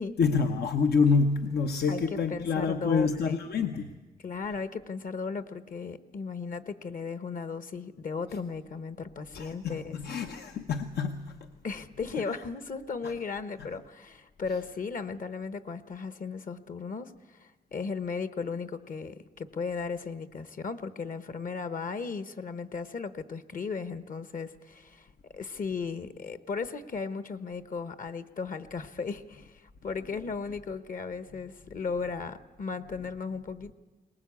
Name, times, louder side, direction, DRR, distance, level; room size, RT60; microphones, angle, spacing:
voice 1, 0.2-4.0 9.3-11.5 13.0-13.1, left 5 dB, 85° left, 0.9 m, -27 dB
voice 2, 1.9-3.5 4.2-10.0 11.6-25.1 25.3-33.7, left 5 dB, 55° left, 1.1 m, -36 dB
22.0 x 19.5 x 8.4 m
wide cardioid pair, 105°, 16 cm